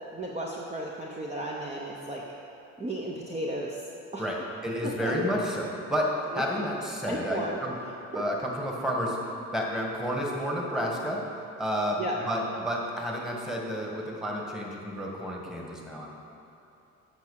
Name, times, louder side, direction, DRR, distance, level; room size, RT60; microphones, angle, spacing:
voice 1, 0.1-2.2 2.8-3.8 4.1-4.2 4.8-5.1 6.3-6.4 7.1-7.6 8.1-8.2 12.0-12.2, right 1 dB, 20° right, -3 dB, 0.9 m, -34 dB
voice 2, 4.2-7.7 8.1-11.3 11.6-16.1, equal, ahead, -2 dB, 1.7 m, -31 dB
8.2 x 5.9 x 6.5 m, 2.8 s
cardioid pair, 90°, 30 cm